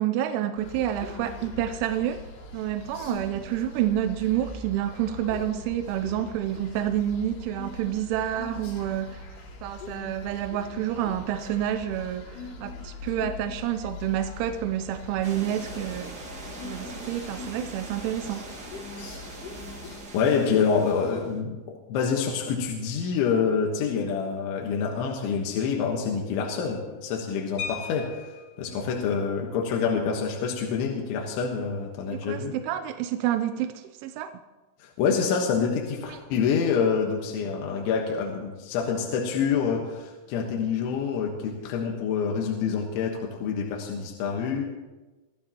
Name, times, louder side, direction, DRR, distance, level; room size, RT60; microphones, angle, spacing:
voice 1, 0.0-2.2 2.5-9.2 9.6-16.2 16.6-18.5 32.1-34.3 36.1-36.2, right 11 dB, 85° right, 7 dB, 3.1 m, -29 dB
sound 1, 0.6-20.0, left 3 dB, 65° left, 4.2 m, -42 dB
sound 2, 15.2-21.4, right 2 dB, 50° right, 1.1 m, -42 dB
voice 2, 20.1-21.6 21.9-28.2 28.6-32.6 34.8-44.6, left 6 dB, 80° left, 1 dB, 3.7 m, -27 dB
sound 3, 27.6-28.7 30.1-30.2 30.6-30.8 31.1-31.4, left 7 dB, 50° left, 2.8 m, -38 dB
25.5 x 14.5 x 3.0 m, 1.2 s
omnidirectional pair, 5.4 m